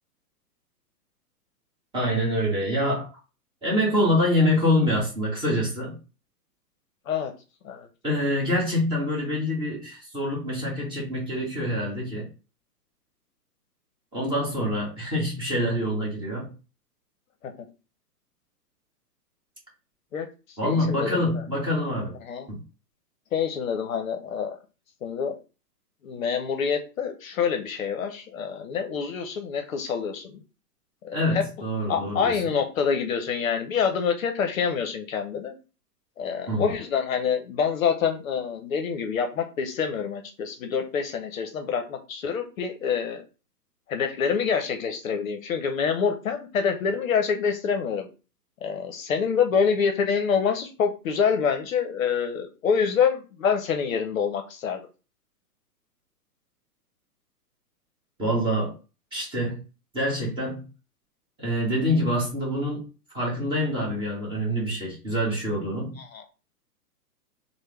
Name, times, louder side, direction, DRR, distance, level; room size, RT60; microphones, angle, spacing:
voice 1, 1.9-3.1 3.6-5.9 8.0-12.3 14.1-16.5 20.6-22.1 22.5-22.6 31.1-32.4 36.5-36.7 58.2-58.7 59.1-59.6 59.9-60.7 61.4-62.8 63.1-66.0, left 1 dB, 10° right, -5 dB, 0.9 m, -25 dB
voice 2, 20.6-21.2 22.2-22.5 23.3-24.6 25.0-25.4 26.0-30.3 31.0-31.4 31.9-35.5 36.2-43.2 43.9-48.1 48.6-54.8 66.0-66.2, left 6 dB, 60° left, 5 dB, 0.7 m, -26 dB
3.3 x 2.1 x 3.1 m, 0.32 s
hypercardioid pair, 135°, 47 cm